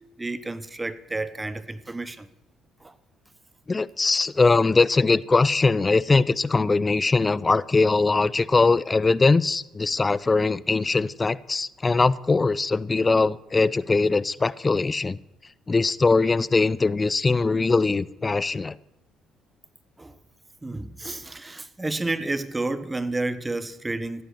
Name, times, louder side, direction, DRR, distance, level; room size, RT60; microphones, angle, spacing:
voice 1, 0.2-2.3 2.8-2.9 20.0-20.2 20.6-24.2, right 2 dB, 15° right, 1.1 m, -30 dB
voice 2, 3.7-15.2 15.7-18.8, left 3 dB, 25° left, 0.6 m, -21 dB
15.5 x 10.0 x 7.9 m
cardioid pair, 85°, 0 cm